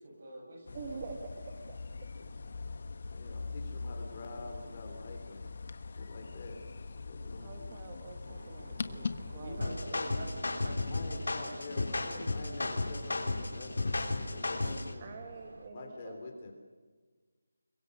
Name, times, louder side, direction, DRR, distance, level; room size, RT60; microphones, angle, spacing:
voice 1, 0.0-1.0 9.4-11.0 11.7-11.8 12.1-12.2 14.5-14.8, right 1 dB, 40° right, 1 dB, 6.9 m, -45 dB
sound 1, 0.7-9.6, left 4 dB, 45° left, 1.3 m, -42 dB
voice 2, 0.7-1.8 7.4-9.6 15.0-16.2, right 4 dB, 20° right, 4 dB, 1.7 m, -46 dB
voice 3, 3.1-5.4 5.8-7.8 10.9-15.1 15.7-16.5, left 2 dB, 25° left, 3 dB, 3.3 m, -46 dB
sound 2, 8.3-15.7, right 2 dB, 60° right, 3.7 m, -53 dB
sound 3, 9.6-14.9, left 2 dB, 75° left, 4.1 m, -34 dB
27.0 x 23.0 x 6.5 m, 1.4 s
figure-of-eight pair, 175°, 0 cm